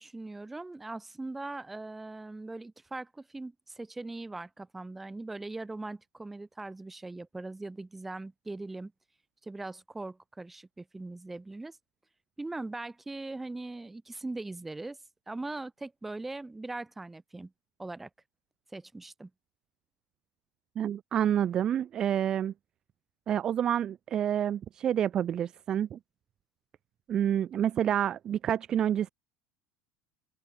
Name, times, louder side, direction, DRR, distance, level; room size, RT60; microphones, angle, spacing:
voice 1, 0.0-8.9 9.4-11.8 12.4-15.0 15.3-17.5 17.8-18.1 18.7-19.3, right 2 dB, 10° right, 4.9 m, -40 dB
voice 2, 20.8-22.5 23.3-26.0 27.1-29.1, right 10 dB, 30° right, 0.3 m, -28 dB
cardioid pair, 150°, 2 cm